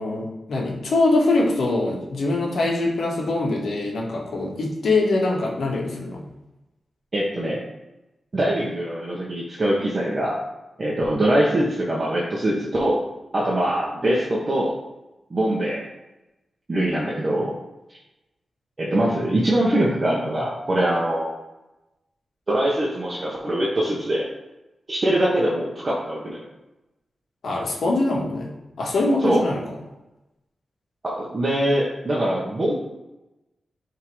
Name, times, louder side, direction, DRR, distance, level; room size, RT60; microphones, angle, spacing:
voice 1, 0.0-6.2 27.4-28.5 28.8-29.6, left 2 dB, 80° left, -2 dB, 1.5 m, -23 dB
voice 2, 7.1-7.6 8.3-10.4 10.8-13.0 13.3-14.7 15.3-15.9 16.7-17.5 18.8-21.3 22.5-24.3 24.9-26.4 29.2-29.4 31.0-32.7, right 1 dB, 40° right, -6 dB, 1.1 m, -23 dB
9.4 x 3.7 x 3.2 m, 0.98 s
wide cardioid pair, 95°, 0 cm